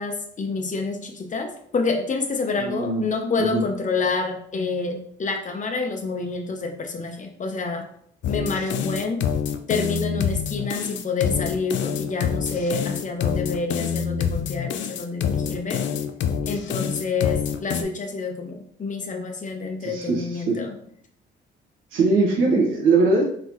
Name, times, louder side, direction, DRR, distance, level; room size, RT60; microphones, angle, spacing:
voice 1, 0.0-7.9 8.3-9.2 9.7-15.8 16.5-20.7 22.4-22.7, left 4 dB, 40° left, 4 dB, 0.9 m, -28 dB
voice 2, 2.6-3.0 3.4-3.6 19.8-20.6 21.9-23.2, right 3 dB, 85° right, -2 dB, 1.4 m, -21 dB
sound 1, 8.2-17.8, left 7 dB, 70° left, 0.5 m, -26 dB
3.8 x 3.8 x 3.0 m, 0.65 s
cardioid pair, 90°, 20 cm